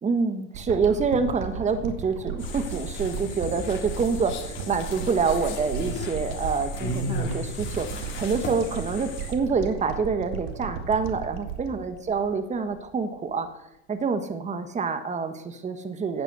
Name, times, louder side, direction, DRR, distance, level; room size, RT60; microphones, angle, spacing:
voice 1, 0.0-13.5 13.9-16.2, right 5 dB, 25° right, 9 dB, 1.5 m, -27 dB
sound 1, 0.5-12.9 13.3-13.4, right 7 dB, 80° right, 2.3 m, -36 dB
sound 2, 2.4-9.3, left 3 dB, 40° left, 4.3 m, -35 dB
12.0 x 9.3 x 8.1 m, 0.89 s
supercardioid pair, 105°, 30 cm